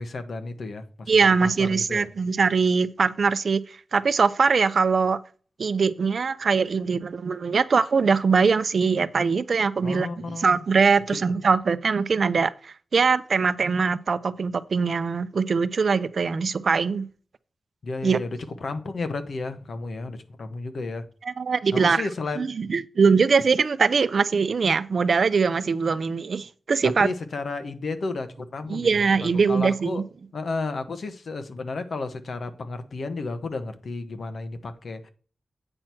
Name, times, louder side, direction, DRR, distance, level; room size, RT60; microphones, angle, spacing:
voice 1, 0.0-2.1 9.8-10.6 11.1-11.2 17.8-21.1 21.7-22.4 26.8-30.1 30.3-35.1, left 3 dB, 55° left, 1.2 m, -33 dB
voice 2, 1.1-5.2 5.6-10.1 10.4-17.1 18.0-18.2 21.2-22.1 22.4-27.1 28.7-30.0, right 5 dB, 55° right, 0.6 m, -22 dB
8.9 x 6.0 x 4.5 m
wide cardioid pair, 165°, 0 cm